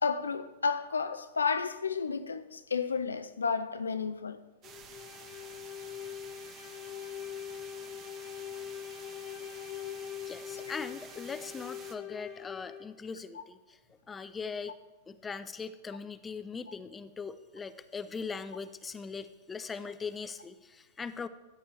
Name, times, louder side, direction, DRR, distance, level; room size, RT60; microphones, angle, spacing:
voice 1, 0.0-4.4, left 5 dB, 85° left, 0.5 m, -31 dB
sound 1, 4.6-13.0, left 10 dB, 40° left, 0.9 m, -43 dB
sound 2, 4.6-12.0, right 7 dB, 35° right, 1.0 m, -51 dB
voice 2, 10.3-13.8 14.1-14.8 15.1-21.3, left 5 dB, 20° left, 0.5 m, -40 dB
13.5 x 9.1 x 3.2 m
figure-of-eight pair, 95°, 0 cm